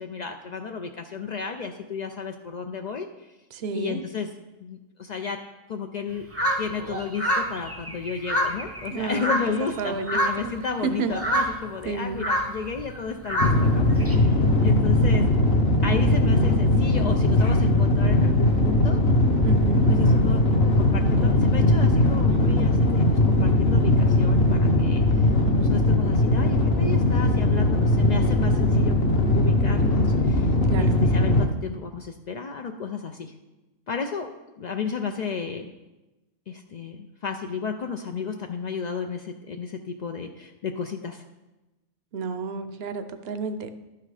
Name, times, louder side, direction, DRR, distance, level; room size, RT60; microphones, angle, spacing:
voice 1, 0.0-3.4 3.7-4.3 4.6-5.4 5.7-6.3 6.6-15.2 15.8-19.0 19.9-25.3 25.6-31.3 31.6-33.3 33.9-34.3 34.6-35.7 36.5-41.2, left 5 dB, 75° left, 4 dB, 0.4 m, -33 dB
voice 2, 3.6-4.0 8.9-9.3 9.8-10.3 10.8-11.1 11.9-12.2 19.4-19.8 30.7-31.0 42.1-43.7, right 5 dB, 60° right, 10 dB, 0.8 m, -30 dB
sound 1, 6.3-9.8 10.1-10.6 11.0-14.2, equal, 15° right, 0.6 m, -27 dB
sound 2, 13.4-31.5, left 1 dB, 50° left, 1.0 m, -20 dB
11.5 x 5.8 x 4.9 m, 1.1 s
omnidirectional pair, 1.4 m